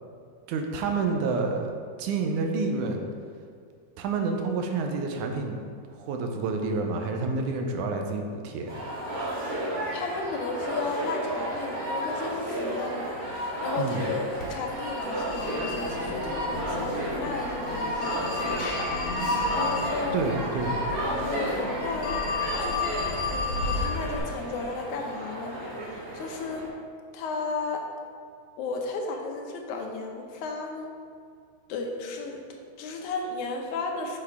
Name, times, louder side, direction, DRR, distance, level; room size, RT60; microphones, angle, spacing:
voice 1, 0.5-1.7 2.0-3.0 4.0-5.7 6.0-8.8 13.8-14.0 20.1-20.8, right 4 dB, 85° right, 3 dB, 2.2 m, -28 dB
sound 1, 8.7-26.7, right 1 dB, 45° right, 1.2 m, -32 dB
voice 2, 9.5-14.2 14.5-18.7 19.5-20.3 21.2-22.2 22.6-22.8 23.3-26.7 27.1-27.9 28.6-30.9 31.7-34.2, left 3 dB, 80° left, 2 dB, 2.3 m, -34 dB
Telephone, 14.4-24.2, left 3 dB, 55° left, 1.9 m, -32 dB
8.2 x 5.9 x 3.5 m, 2.1 s
omnidirectional pair, 3.4 m